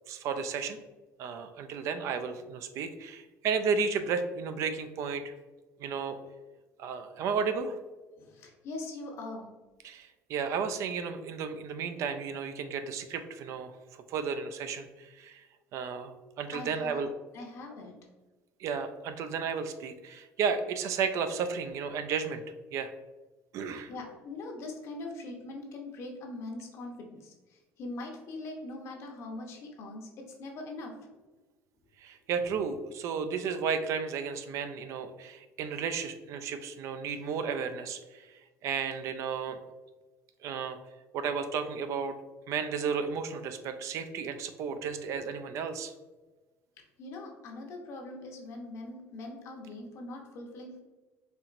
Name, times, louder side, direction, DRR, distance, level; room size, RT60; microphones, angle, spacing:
voice 1, 0.1-0.8 1.2-5.3 5.8-6.2 6.8-7.8 9.8-15.4 15.7-16.1 16.4-17.1 18.6-22.4 22.7-22.9 23.5-23.9 32.0-39.6 40.4-40.8 41.1-42.1 42.5-45.9, right 6 dB, 60° right, 8 dB, 0.3 m, -33 dB
voice 2, 8.2-9.5 16.5-17.0 17.3-18.0 23.9-30.9 44.8-44.9 46.8-50.8, left 2 dB, 50° left, 1 dB, 0.8 m, -42 dB
4.3 x 2.9 x 2.5 m, 1.2 s
cardioid pair, 140°, 6 cm